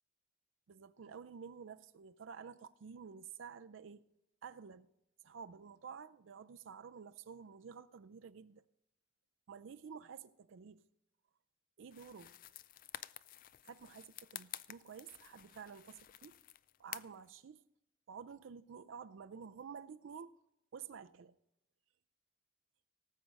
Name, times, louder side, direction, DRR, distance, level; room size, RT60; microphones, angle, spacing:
voice 1, 0.7-4.0 4.4-4.9 5.2-8.6 9.5-10.8 11.8-12.3 13.7-16.4 16.8-17.6 18.1-20.4 20.7-21.3, right 6 dB, 80° right, 0.4 m, -51 dB
sound 1, 11.9-17.3, left 12 dB, 45° left, 0.4 m, -51 dB
18.0 x 7.5 x 5.2 m
head